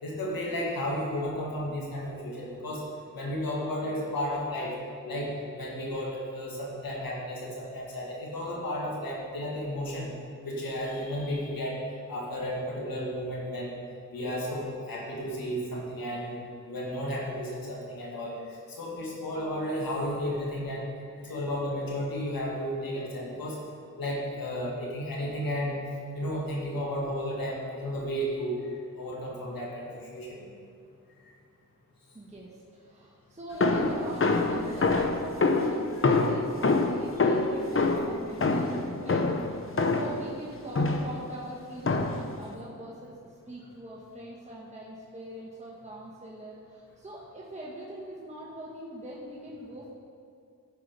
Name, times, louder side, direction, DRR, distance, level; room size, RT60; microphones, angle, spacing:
voice 1, 0.0-2.9 3.1-4.8 5.0-10.1 10.4-11.8 12.1-13.8 14.1-16.4 16.7-20.9 21.2-23.6 24.0-25.8 26.1-28.7 29.0-30.5 31.2-31.3, equal, 90° left, -3 dB, 2.0 m, -33 dB
voice 2, 32.1-49.9, right 1 dB, 20° right, -5 dB, 1.4 m, -42 dB
sound 1, 33.6-40.3 40.8-41.2 41.9-42.3, left 3 dB, 40° left, 0.8 m, -26 dB
11.0 x 4.9 x 5.2 m, 2.3 s
cardioid pair, 55°, 34 cm